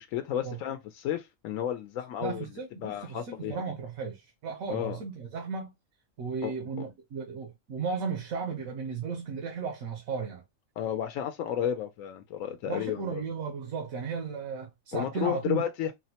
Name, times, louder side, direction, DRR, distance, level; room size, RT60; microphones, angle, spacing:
voice 1, 0.0-2.5 2.8-3.6 4.7-5.0 6.4-6.5 10.8-13.2 14.9-15.9, left 10 dB, 80° left, 1.0 m, -32 dB
voice 2, 2.2-5.7 6.2-10.4 12.7-15.6, right 5 dB, 90° right, 1.2 m, -35 dB
4.2 x 2.1 x 2.7 m
omnidirectional pair, 1.4 m